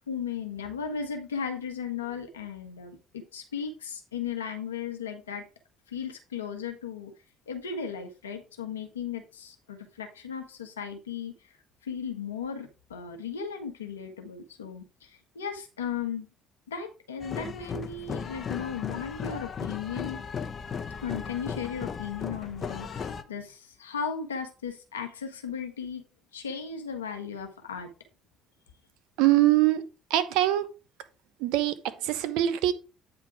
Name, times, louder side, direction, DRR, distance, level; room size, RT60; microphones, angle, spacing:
voice 1, 0.1-5.4 5.9-7.1 7.5-11.3 11.8-16.3 16.7-20.2 21.0-26.0 26.3-27.9, left 6 dB, 85° left, 1.1 m, -36 dB
sound 1, 17.2-23.2, left 6 dB, 45° left, 0.8 m, -36 dB
voice 2, 29.2-29.8 30.1-30.7 31.4-32.7, right 14 dB, 70° right, 0.7 m, -23 dB
8.9 x 3.5 x 4.7 m
hypercardioid pair, 55°, 0 cm